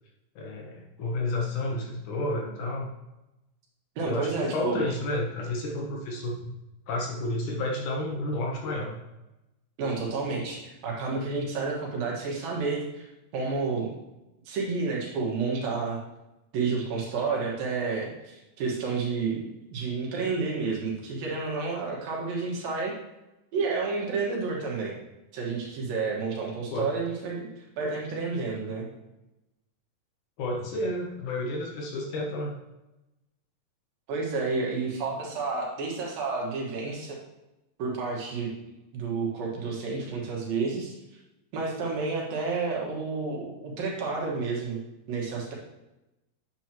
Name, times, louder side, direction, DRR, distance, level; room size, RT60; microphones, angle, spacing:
voice 1, 0.4-2.9 4.0-6.5 6.9-9.0 26.7-26.9 30.4-32.5, left 1 dB, 70° left, 0 dB, 2.2 m, -31 dB
voice 2, 4.0-4.8 9.8-13.1 13.3-13.9 14.5-16.0 16.5-19.4 19.7-22.9 23.5-24.9 25.3-28.9 34.1-37.2 37.8-38.5 38.9-40.9 41.5-44.8 45.1-45.6, right 4 dB, 75° right, -3 dB, 3.3 m, -30 dB
9.0 x 7.6 x 3.0 m, 0.98 s
omnidirectional pair, 4.2 m